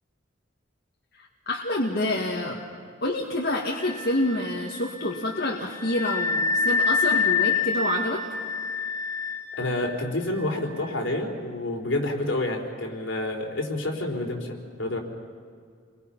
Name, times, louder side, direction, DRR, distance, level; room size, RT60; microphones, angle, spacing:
voice 1, 1.5-2.6 3.0-8.2, left 1 dB, 55° left, -2 dB, 2.1 m, -27 dB
Wind instrument woodwind instrument, 3.6-11.0, left 4 dB, 30° left, 7.3 m, -28 dB
voice 2, 9.6-15.0, left 1 dB, 70° left, 1 dB, 3.9 m, -29 dB
29.5 x 23.0 x 5.7 m, 2.2 s
head